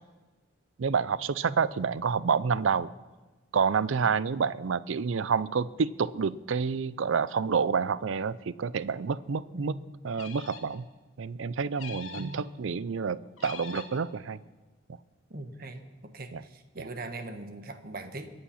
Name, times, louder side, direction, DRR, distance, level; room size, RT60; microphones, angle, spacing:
voice 1, 0.8-2.9 3.5-9.8 10.0-10.9 11.2-14.4 16.3-16.4 16.8-16.9, right 5 dB, 75° right, 18 dB, 0.5 m, -28 dB
voice 2, 9.5-9.9 12.1-12.5 15.3-18.3, right 2 dB, 45° right, 8 dB, 1.2 m, -41 dB
sound 1, 10.1-10.8 11.8-12.4 13.4-14.0, left 6 dB, 90° left, 1.7 m, -43 dB
22.5 x 8.7 x 5.7 m, 1.2 s
head